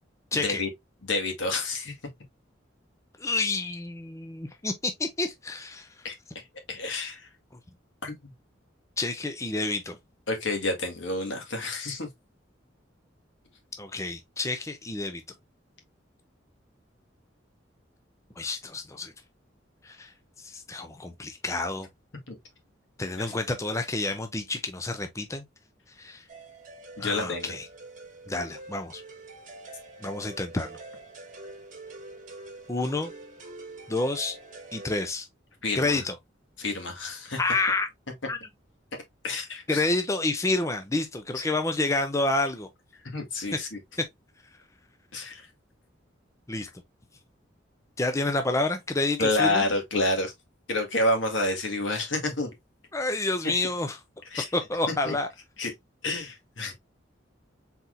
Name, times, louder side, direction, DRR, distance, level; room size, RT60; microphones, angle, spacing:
voice 1, 0.3-0.7 1.0-1.9 6.0-6.2 6.7-7.3 8.0-8.3 10.3-12.1 22.3-22.4 23.3-23.4 27.0-27.5 35.6-36.0 36.6-37.4 39.2-39.8 43.0-43.8 45.1-45.5 49.2-50.3 50.7-52.5 54.3-54.5 54.9-55.2 55.6-55.7 56.0-56.7, left 2 dB, 85° left, 1.7 m, -29 dB
voice 2, 3.2-5.9 9.0-10.0 13.8-15.2 18.4-19.1 19.8-20.1 20.4-21.9 23.0-25.4 26.0-26.2 27.0-27.7 28.3-29.0 30.0-30.8 32.7-33.1 33.9-34.4 34.7-35.3 35.7-36.1 37.4-37.9 38.3-38.4 39.7-42.7 44.0-44.1 46.5-46.7 48.0-49.6 52.9-54.0 54.5-55.3, left 2 dB, 15° left, 0.5 m, -29 dB
sound 1, 26.3-35.1, right 2 dB, 45° right, 1.5 m, -45 dB
4.3 x 3.9 x 2.5 m
head